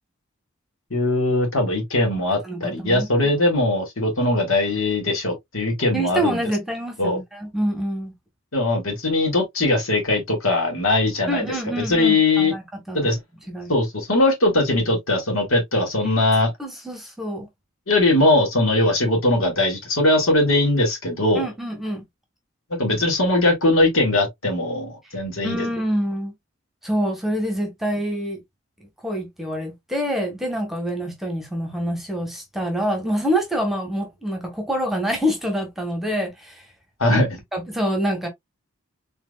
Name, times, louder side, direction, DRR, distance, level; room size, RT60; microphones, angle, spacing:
voice 1, 0.9-6.4 7.0-7.2 8.5-12.5 12.9-13.2 13.7-16.5 17.9-21.5 22.8-25.6 37.0-37.4, left 2 dB, 80° left, 2.0 m, -20 dB
voice 2, 2.4-3.1 5.9-8.1 11.3-13.1 13.5-13.7 16.6-17.5 21.3-22.0 25.4-26.3 26.8-28.4 29.0-36.6 37.5-38.3, equal, ahead, 1.1 m, -26 dB
4.4 x 3.6 x 2.3 m
head